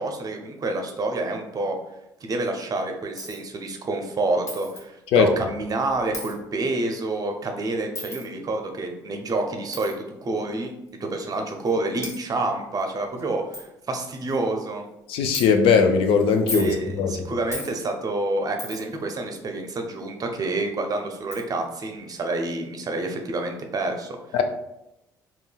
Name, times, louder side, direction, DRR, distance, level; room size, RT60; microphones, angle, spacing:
voice 1, 0.0-1.8 2.2-9.9 10.2-10.7 11.0-14.8 16.5-24.2, right 2 dB, 35° right, 4 dB, 0.6 m, -28 dB
Coin (dropping), 3.2-3.4 4.5-4.8 6.1-6.4 7.9-8.2 9.7-9.9 10.9-11.0 11.7-11.8 12.0-12.2 12.8-12.9 13.2-13.3 13.5-13.7 14.1-14.4 15.3-15.5 16.3-16.8 17.5-17.7 18.6-18.9 20.6-20.7 21.3-21.4, left 1 dB, 25° left, 1.0 m, -34 dB
voice 2, 15.1-17.1 24.3-24.4, left 6 dB, 60° left, 6 dB, 0.4 m, -19 dB
3.7 x 2.2 x 2.2 m, 0.88 s
hypercardioid pair, 55°, 11 cm